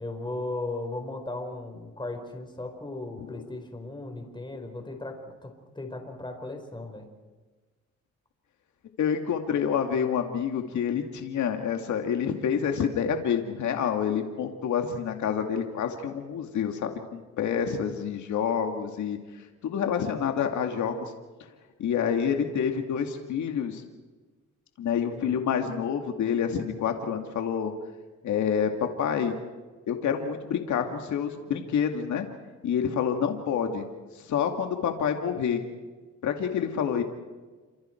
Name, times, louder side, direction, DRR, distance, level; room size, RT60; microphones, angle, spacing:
voice 1, 0.0-7.1 25.2-25.4, left 2 dB, 15° left, 4 dB, 4.5 m, -37 dB
voice 2, 9.0-19.2 19.6-21.0 21.8-23.8 24.8-27.7 28.2-28.7 29.0-29.3 29.9-32.3 32.6-33.8 34.2-35.6 36.2-37.0, left 7 dB, 70° left, 4 dB, 2.3 m, -28 dB
28.5 x 26.5 x 4.6 m, 1.3 s
cardioid pair, 90°, 30 cm